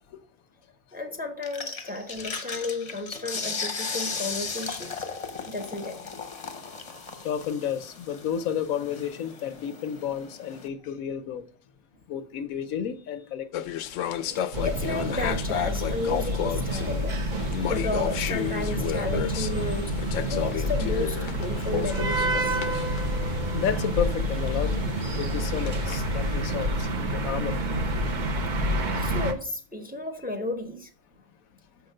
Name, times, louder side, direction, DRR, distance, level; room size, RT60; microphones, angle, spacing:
voice 1, 0.9-5.1 5.5-6.0 13.9-19.9 20.3-22.6 29.0-30.9, left 2 dB, 10° right, 0.8 m, -33 dB
sound 1, 1.4-10.7, left 4 dB, 30° left, 0.9 m, -36 dB
voice 2, 6.9-11.5 12.1-13.8 23.4-27.7, left 8 dB, 90° left, 1.2 m, -32 dB
sound 2, 13.5-26.4, left 10 dB, 70° left, 0.9 m, -33 dB
sound 3, 14.5-29.3, equal, 40° right, 0.9 m, -28 dB
6.7 x 5.8 x 6.4 m
omnidirectional pair, 1.4 m